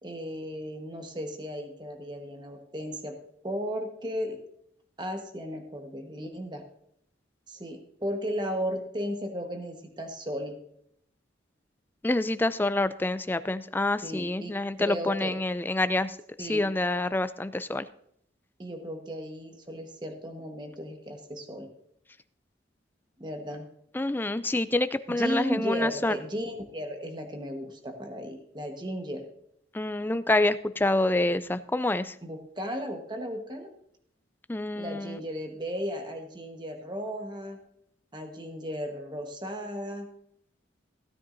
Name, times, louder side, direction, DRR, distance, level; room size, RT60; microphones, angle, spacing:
voice 1, 0.0-3.1 3.4-4.4 5.0-6.6 7.5-10.6 14.0-14.5 14.8-15.3 16.4-16.7 18.6-21.7 23.2-23.7 25.1-29.3 32.2-33.7 34.7-37.6 38.1-40.1, equal, 25° right, 4 dB, 1.2 m, -35 dB
voice 2, 12.0-17.9 23.9-26.2 29.7-32.2 34.5-35.2, left 2 dB, 10° left, 13 dB, 0.3 m, -27 dB
16.0 x 9.7 x 2.6 m, 0.71 s
head